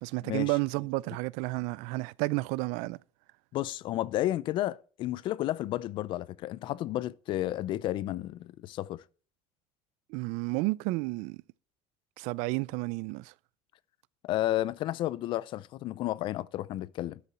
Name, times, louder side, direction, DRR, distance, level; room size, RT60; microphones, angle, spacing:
voice 1, 0.0-3.0 10.1-11.4 12.2-13.3, right 23 dB, 85° right, 0.4 m, -31 dB
voice 2, 3.5-9.0 14.2-17.2, left 14 dB, 45° left, 0.4 m, -32 dB
12.0 x 6.8 x 4.2 m
cardioid pair, 175°, 12 cm